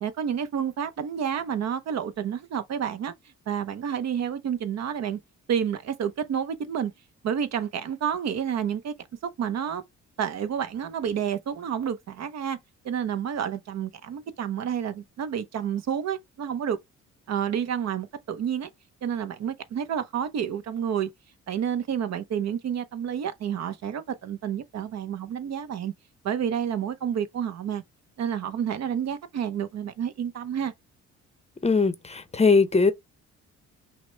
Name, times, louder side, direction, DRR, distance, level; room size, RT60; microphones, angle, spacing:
voice 1, 0.0-3.1 3.5-5.2 5.5-6.9 7.2-8.9 9.2-9.8 10.2-12.6 12.8-16.8 17.3-18.7 19.0-21.1 21.5-25.9 26.2-27.8 28.2-30.7, right 8 dB, 60° right, 0.7 m, -29 dB
voice 2, 31.6-32.9, left 4 dB, 20° left, 0.6 m, -20 dB
5.8 x 2.1 x 3.3 m
cardioid pair, 90°, 30 cm